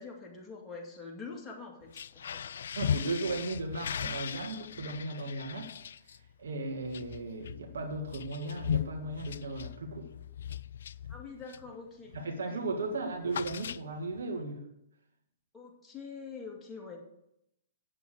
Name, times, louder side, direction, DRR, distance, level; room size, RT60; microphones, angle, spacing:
voice 1, 0.0-2.4 11.1-12.1 12.5-12.6 15.5-17.0, left 4 dB, 10° left, -2 dB, 2.5 m, -45 dB
sound 1, 1.8-11.8 12.1-12.4 12.7-14.2, left 8 dB, 70° left, 0.3 m, -38 dB
voice 2, 2.8-5.7 6.1-10.1 12.1-14.6, right 2 dB, 70° right, 4 dB, 1.8 m, -36 dB
8.8 x 7.8 x 6.6 m, 0.81 s
hypercardioid pair, 120°, 0 cm